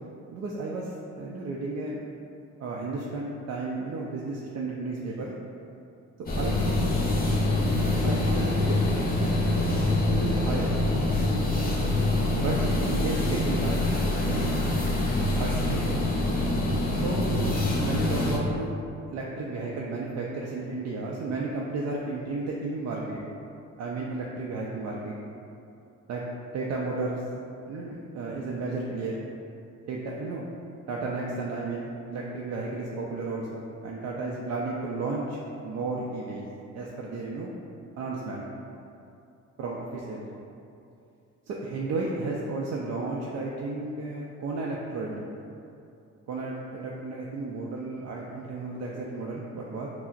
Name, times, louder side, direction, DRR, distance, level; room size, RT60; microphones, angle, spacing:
voice 1, 0.3-2.0 2.6-5.3 6.4-6.8 7.8-9.6 10.1-10.7 12.3-13.7 14.2-14.5 15.3-15.8 16.9-18.7 19.1-23.2 23.8-25.1 26.1-26.2 26.5-27.2 27.7-29.2 29.9-30.5 30.9-36.5 36.7-37.5 38.0-38.5 39.6-40.2 41.5-45.2 46.3-49.9, right 3 dB, 60° right, -3 dB, 0.4 m, -33 dB
sound 1, 6.3-18.4, left 2 dB, 30° left, 0.7 m, -25 dB
5.7 x 2.0 x 2.4 m, 2.6 s
cardioid pair, 90°, 30 cm